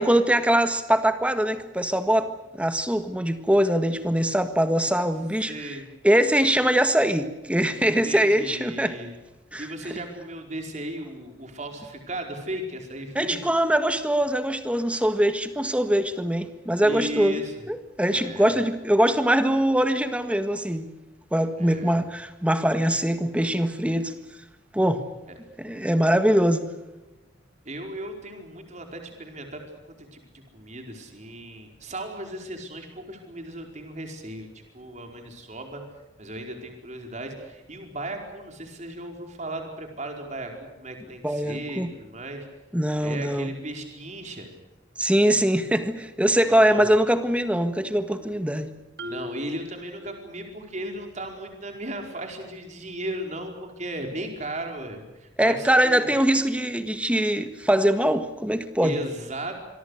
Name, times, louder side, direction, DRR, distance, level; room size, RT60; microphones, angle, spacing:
voice 1, 0.0-5.8 6.0-9.0 9.5-9.7 13.2-17.4 17.7-20.9 21.3-24.1 24.7-25.0 25.6-26.6 41.2-41.9 42.7-43.5 45.0-48.7 55.4-59.0, right 1 dB, 5° right, 9 dB, 1.7 m, -22 dB
voice 2, 5.5-5.9 7.8-9.1 9.6-13.4 16.8-17.5 18.1-18.6 21.6-22.0 25.3-25.4 27.6-30.2 30.5-34.5 34.7-35.8 36.2-42.5 43.0-44.5 46.5-46.8 49.0-56.1 58.8-59.6, right 1 dB, 40° right, 3 dB, 4.8 m, -36 dB
Marimba xylophone, 49.0-50.7, left 2 dB, 60° right, 2.4 m, -40 dB
26.5 x 23.0 x 6.6 m, 1.0 s
head